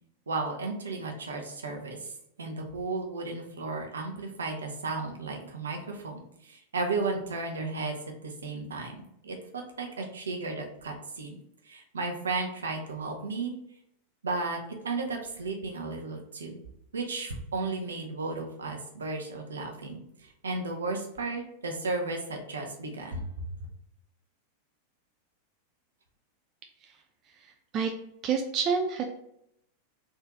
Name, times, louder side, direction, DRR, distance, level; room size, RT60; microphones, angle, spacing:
voice 1, 0.3-2.1 2.4-8.0 8.2-11.4 11.6-13.5 14.2-14.6 14.8-16.6 16.9-23.5, right 3 dB, 70° right, 2 dB, 0.7 m, -34 dB
voice 2, 27.4-27.9 28.2-29.0, right 6 dB, 35° right, 3 dB, 0.4 m, -28 dB
3.7 x 2.6 x 3.5 m, 0.76 s
figure-of-eight pair, 90°, 0 cm